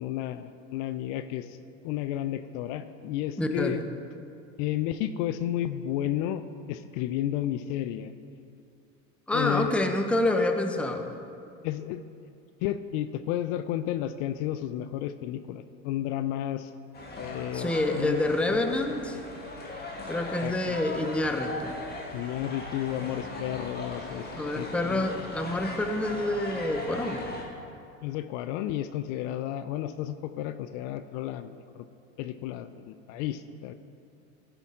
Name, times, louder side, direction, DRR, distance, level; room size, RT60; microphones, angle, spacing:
voice 1, 0.0-1.6 1.8-3.8 4.6-6.4 6.7-8.1 9.3-9.9 11.6-12.0 12.6-16.7 17.1-19.2 20.4-20.8 22.1-24.3 24.5-25.2 28.0-31.8 32.2-33.7, left 12 dB, 60° left, 12 dB, 0.5 m, -32 dB
voice 2, 3.4-3.7 9.3-11.1 17.5-19.2 20.1-21.8 24.3-27.2, left 1 dB, 5° left, 5 dB, 0.6 m, -27 dB
sound 1, 16.9-27.4, left 2 dB, 25° left, 1.7 m, -39 dB
15.0 x 5.3 x 3.7 m, 2.5 s
hypercardioid pair, 90°, 40 cm